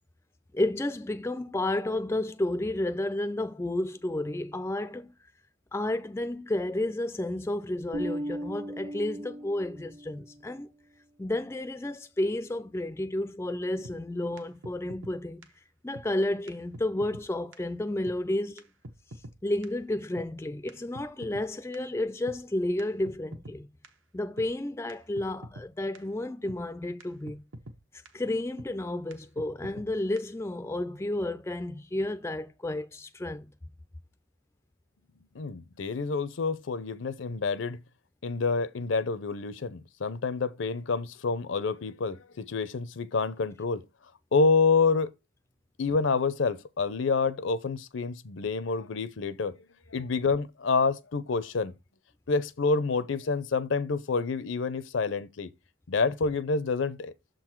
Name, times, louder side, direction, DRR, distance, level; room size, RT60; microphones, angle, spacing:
voice 1, 0.5-5.1 5.7-10.7 11.2-15.5 15.8-18.7 19.4-23.7 24.1-27.4 28.1-33.5, left 1 dB, 15° left, 0.4 m, -31 dB
Bass guitar, 7.9-10.4, equal, 50° right, 1.0 m, -37 dB
sound 1, 13.8-14.0 14.4-14.5 14.6-15.1 15.4-15.5 15.9-16.1 16.5-16.6 16.7-17.3 17.5-17.6 18.1-18.2 18.6-18.7 18.8-19.4 19.6-19.7 20.2-20.3 20.7-21.5 21.7-21.8 22.3-22.4 22.8-22.9 23.1-23.6 23.8-23.9 24.4-24.5 24.9-25.0 25.2-25.7 25.9-26.0 26.5-26.6 27.0-27.1 27.3-27.8 28.1-28.2 28.6-28.7 29.1-29.2 29.4-29.9 30.2-30.3, right 1 dB, 70° right, 1.0 m, -44 dB
voice 2, 35.3-37.8 38.2-43.8 44.3-45.1 45.8-49.6 49.9-51.7 52.3-55.5 55.9-57.1, left 4 dB, 65° left, 0.6 m, -28 dB
6.8 x 3.9 x 4.5 m
head